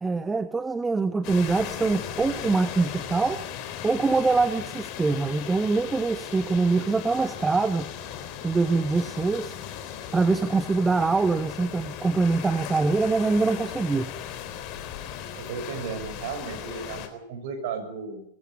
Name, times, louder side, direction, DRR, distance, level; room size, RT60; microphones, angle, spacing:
voice 1, 0.0-3.4 3.8-7.9 8.4-9.6 10.1-14.1, right 3 dB, 10° right, 14 dB, 1.1 m, -24 dB
sound 1, 1.2-17.1, left 9 dB, 40° left, 3.8 m, -37 dB
voice 2, 15.3-18.2, right 6 dB, 50° right, 8 dB, 6.4 m, -35 dB
22.0 x 15.5 x 8.6 m, 0.74 s
figure-of-eight pair, 90°, 0 cm